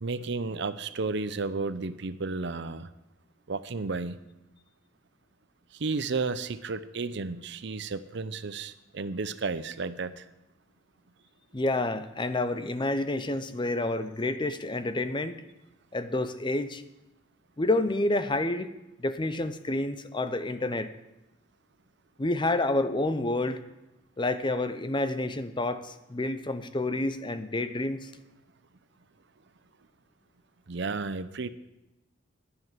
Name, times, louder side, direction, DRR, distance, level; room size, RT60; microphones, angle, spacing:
voice 1, 0.0-2.9 3.5-4.2 5.7-10.3 30.7-31.5, right 4 dB, 60° right, 14 dB, 0.6 m, -32 dB
voice 2, 11.5-15.4 15.9-16.8 17.6-18.7 19.0-20.9 22.2-23.6 24.2-28.1, left 2 dB, 25° left, 11 dB, 0.7 m, -29 dB
11.0 x 9.8 x 7.3 m, 0.94 s
head